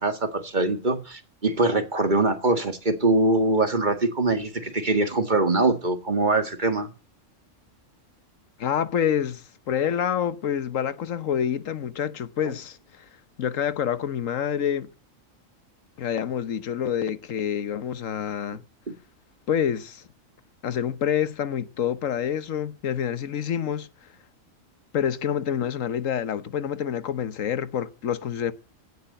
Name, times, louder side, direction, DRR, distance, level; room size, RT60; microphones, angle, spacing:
voice 1, 0.0-6.9 18.9-19.0, right 2 dB, 35° right, 2.1 m, -23 dB
voice 2, 8.6-13.1 13.4-14.9 16.0-18.6 19.5-20.0 20.6-23.9 24.9-28.5, left 9 dB, 80° left, 1.4 m, -27 dB
17.0 x 8.6 x 7.9 m
omnidirectional pair, 1.3 m